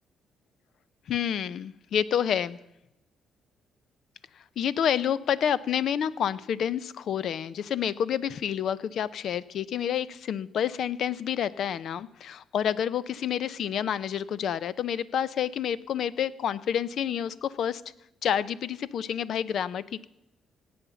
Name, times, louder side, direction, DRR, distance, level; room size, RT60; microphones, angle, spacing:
voice 1, 1.1-2.6 4.6-17.8 18.2-20.1, left 9 dB, 65° left, 18 dB, 0.6 m, -29 dB
17.0 x 8.7 x 6.9 m, 0.88 s
cardioid pair, 90°, 0 cm